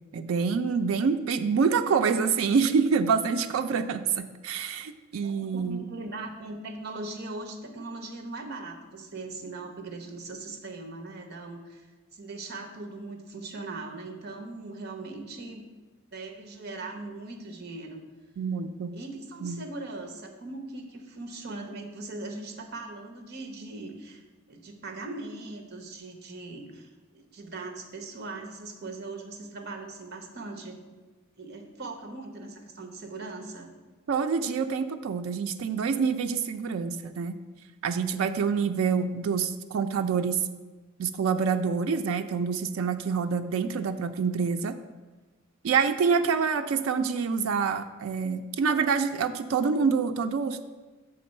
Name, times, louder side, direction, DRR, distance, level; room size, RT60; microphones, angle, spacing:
voice 1, 0.1-5.9 18.4-19.0 19.4-19.6 34.1-37.4 37.8-40.4 41.0-44.7 45.6-50.6, right 5 dB, 85° right, 8 dB, 0.4 m, -26 dB
voice 2, 5.2-11.9 12.1-15.6 16.1-18.0 18.9-24.2 24.5-30.8 31.4-33.7 45.9-46.3, right 3 dB, 55° right, 3 dB, 0.9 m, -40 dB
6.8 x 3.8 x 5.3 m, 1.2 s
head